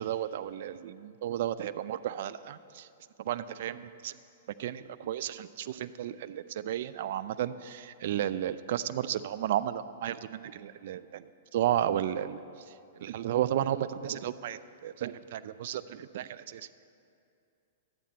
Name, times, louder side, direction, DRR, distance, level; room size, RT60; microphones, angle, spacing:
voice 1, 0.0-2.9 3.2-4.2 4.6-11.3 11.5-16.7, right 11 dB, 60° right, 13 dB, 0.3 m, -33 dB
12.0 x 8.6 x 4.2 m, 2.5 s
hypercardioid pair, 110°, 0 cm